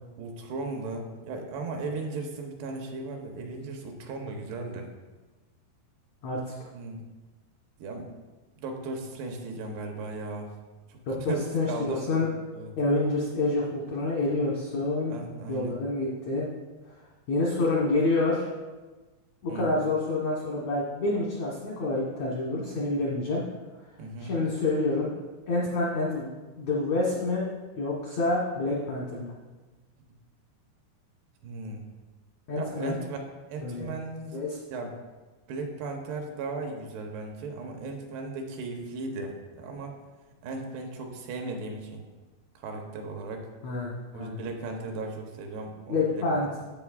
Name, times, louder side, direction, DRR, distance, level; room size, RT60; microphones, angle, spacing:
voice 1, 0.2-4.9 6.7-7.0 7.8-8.1 8.6-10.5 10.9-12.2 12.5-12.7 15.1-15.8 19.5-19.7 24.0-24.3 31.4-31.9 32.6-34.4 34.7-34.9 35.5-40.0 40.4-42.0 42.6-43.5 44.1-46.3, right 3 dB, 75° right, 3 dB, 2.8 m, -36 dB
voice 2, 11.1-12.3 12.8-15.1 15.5-16.4 17.3-18.5 19.4-23.4 24.2-25.1 25.5-26.3 26.6-27.5 27.8-29.3 32.5-33.0 33.6-33.9 34.3-34.6 43.6-44.4 45.9-46.5, left 2 dB, 80° left, -5 dB, 1.6 m, -27 dB
10.5 x 8.0 x 2.4 m, 1.2 s
omnidirectional pair, 4.9 m